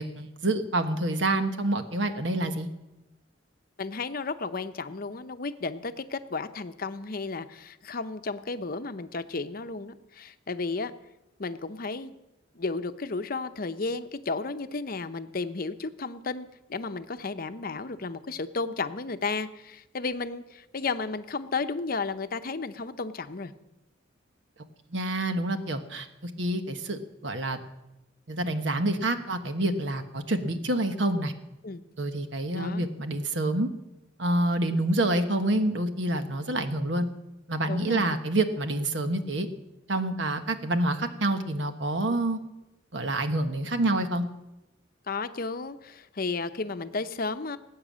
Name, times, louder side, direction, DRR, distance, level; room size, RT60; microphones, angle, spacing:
voice 1, 0.0-2.7 24.9-27.6 28.3-31.3 32.0-33.7 34.2-37.1 37.5-39.5 39.9-42.4 42.9-44.2, right 1 dB, 70° right, 7 dB, 1.3 m, -27 dB
voice 2, 3.8-10.9 11.4-12.1 12.5-23.5 31.6-31.8 32.5-32.9 37.7-38.2 45.1-47.6, left 4 dB, 50° left, 10 dB, 0.8 m, -33 dB
18.5 x 8.9 x 7.5 m, 0.96 s
head